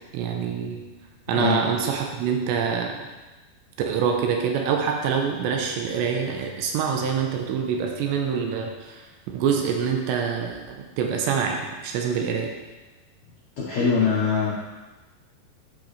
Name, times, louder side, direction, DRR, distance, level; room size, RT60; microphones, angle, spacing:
voice 1, 0.1-0.8 1.3-3.0 3.9-9.0 9.3-12.5, right 6 dB, 85° right, 2 dB, 2.9 m, -25 dB
voice 2, 1.3-1.6 13.6-14.5, left 5 dB, 75° left, -7 dB, 1.6 m, -22 dB
10.5 x 5.0 x 3.3 m, 1.2 s
omnidirectional pair, 5.0 m